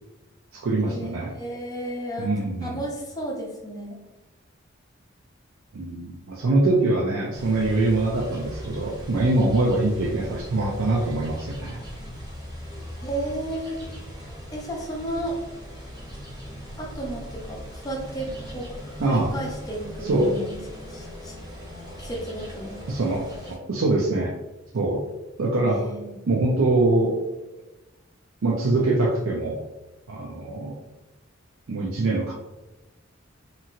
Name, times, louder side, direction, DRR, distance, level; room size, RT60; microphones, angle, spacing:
voice 1, 0.5-1.3 2.2-2.8 5.7-11.8 19.0-19.3 20.0-20.3 22.9-24.4 24.7-25.0 25.4-25.9 26.3-27.2 28.4-29.6 30.1-30.8 31.7-32.3, right 2 dB, 80° right, -2 dB, 0.5 m, -23 dB
voice 2, 1.3-4.0 13.0-13.8 14.5-15.4 16.8-18.7 19.1-20.6 20.9-21.3 22.0-22.8 25.7-26.2, right 1 dB, 20° left, -1 dB, 0.5 m, -33 dB
sound 1, 7.3-23.6, equal, 20° right, 0.7 m, -39 dB
2.9 x 2.8 x 2.4 m, 1.1 s
head